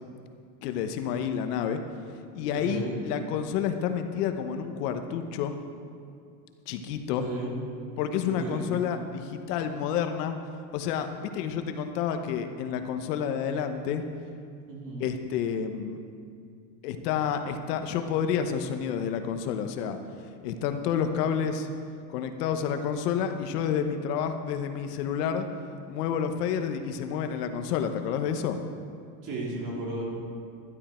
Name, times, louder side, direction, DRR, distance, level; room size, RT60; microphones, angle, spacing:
voice 1, 0.6-1.8 2.3-5.6 6.7-7.3 8.0-10.4 10.7-14.0 15.0-16.0 16.8-20.0 20.4-21.7 22.1-25.5 25.9-28.6, left 8 dB, 75° left, 7 dB, 1.1 m, -29 dB
voice 2, 2.5-3.0 7.2-7.6 8.2-8.7 14.7-15.1 29.2-30.0, right 2 dB, 40° right, -3 dB, 3.1 m, -34 dB
12.0 x 11.0 x 4.4 m, 2.3 s
supercardioid pair, 145°, 48 cm